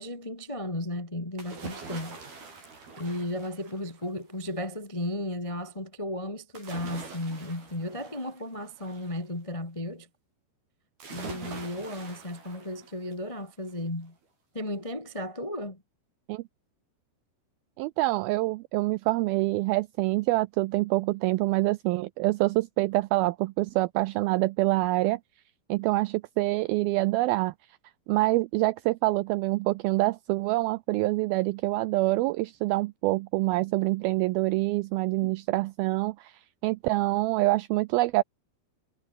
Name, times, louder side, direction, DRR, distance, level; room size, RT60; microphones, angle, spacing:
voice 1, 0.0-2.2 3.0-10.1 11.1-14.1 14.5-15.8 35.2-35.3, left 1 dB, 30° left, 0.6 m, -34 dB
sound 1, 1.4-4.2 6.5-9.2 11.0-13.3 13.7-13.8, right 4 dB, 60° right, 9.6 m, -44 dB
voice 2, 17.8-25.2 25.7-27.5 28.1-38.2, right 20 dB, 85° right, 2.1 m, -26 dB
omnidirectional pair, 4.8 m